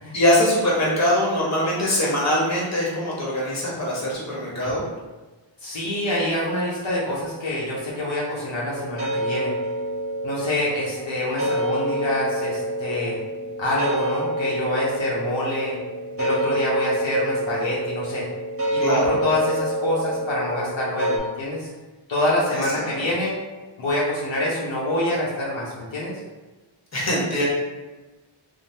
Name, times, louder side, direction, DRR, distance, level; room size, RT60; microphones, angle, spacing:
voice 1, 0.1-4.8 18.8-19.1 22.5-22.8 26.9-27.4, left 1 dB, 35° left, -6 dB, 0.9 m, -22 dB
voice 2, 5.6-9.5 10.2-13.2 13.6-15.8 16.2-18.3 18.7-21.7 22.1-23.3 23.8-26.2, left 1 dB, 65° left, -6 dB, 0.7 m, -26 dB
sound 1, 8.7-21.2, right 1 dB, 30° right, 0.6 m, -27 dB
3.1 x 2.0 x 2.6 m, 1.2 s
wide cardioid pair, 145°, 50 cm